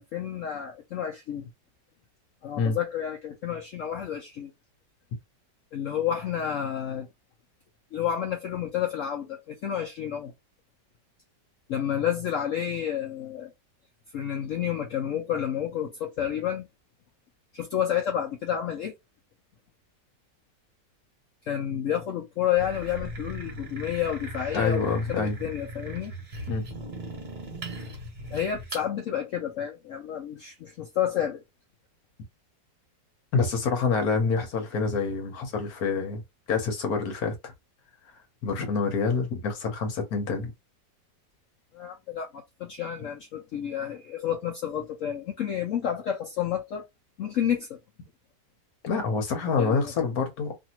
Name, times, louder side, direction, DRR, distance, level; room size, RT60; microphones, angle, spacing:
voice 1, 0.0-1.5 2.4-4.5 5.7-7.1 7.9-10.3 11.7-13.5 14.1-16.7 17.5-19.0 21.4-26.1 28.3-31.4 41.7-46.9 47.2-47.8 49.6-49.9, left 9 dB, 75° left, 0.7 m, -30 dB
sound 1, 22.6-28.9, right 1 dB, 35° right, 0.9 m, -38 dB
voice 2, 24.5-25.4 26.5-26.6 33.3-36.2 36.5-37.5 38.4-40.5 48.8-50.5, left 4 dB, 60° left, 1.2 m, -27 dB
2.8 x 2.6 x 2.8 m
omnidirectional pair, 1.9 m